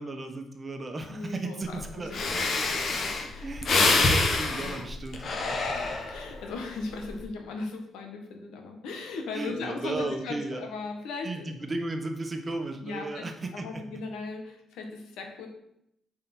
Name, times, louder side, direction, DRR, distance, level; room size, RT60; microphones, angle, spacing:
voice 1, 0.0-2.7 3.4-5.6 9.3-10.6 11.2-13.8, right 2 dB, 30° right, 5 dB, 1.3 m, -35 dB
voice 2, 1.1-3.5 4.6-4.8 5.7-11.5 12.8-13.2 13.5-15.5, left 3 dB, 85° left, 3 dB, 1.7 m, -38 dB
Breathing, 1.8-1.9 2.1-6.4 6.8-7.2, left 3 dB, 55° left, 1.3 m, -26 dB
7.5 x 5.0 x 6.1 m, 0.76 s
cardioid pair, 90°, 0 cm